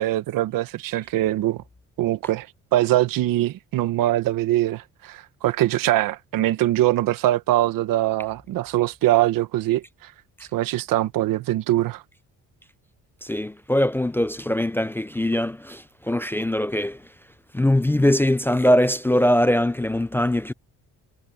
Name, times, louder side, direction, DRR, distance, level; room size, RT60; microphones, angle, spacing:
voice 1, 0.0-1.6 2.0-2.5 2.7-10.1 10.5-12.0, right 15 dB, 85° right, 1.0 m, -22 dB
voice 2, 13.2-17.1 17.5-20.5, left 1 dB, 5° left, 0.4 m, -22 dB
cardioid pair, 150°, 33 cm